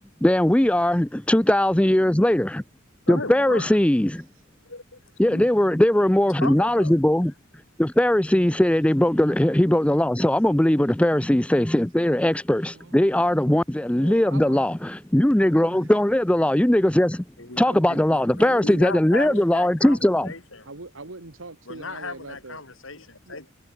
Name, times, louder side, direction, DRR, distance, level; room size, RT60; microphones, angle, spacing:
voice 1, 0.2-2.6 3.1-4.2 5.2-7.3 7.8-17.2 17.6-20.3, left 1 dB, 5° left, 0.5 m, -20 dB
voice 2, 3.1-3.7 4.6-5.5 6.4-7.0 17.4-17.6 17.9-20.7 21.7-23.5, left 3 dB, 75° left, 5.1 m, -36 dB
voice 3, 13.9-14.6 15.5-16.2 17.6-17.8 18.4-19.4 20.7-22.6 23.2-23.4, right 3 dB, 75° right, 2.0 m, -42 dB
head